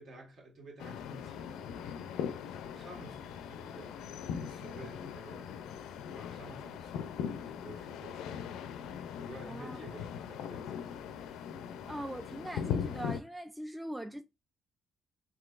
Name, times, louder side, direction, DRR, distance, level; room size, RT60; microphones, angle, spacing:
voice 1, 0.0-4.0 4.4-5.8 6.1-7.2 7.5-10.9 11.7-11.9, right 2 dB, 60° right, 1.6 m, -52 dB
sound 1, 0.8-13.2, left 8 dB, 90° left, 0.4 m, -40 dB
voice 2, 9.5-9.8 11.9-14.2, right 1 dB, 10° right, 0.3 m, -41 dB
3.8 x 2.8 x 2.4 m
cardioid pair, 90°, 0 cm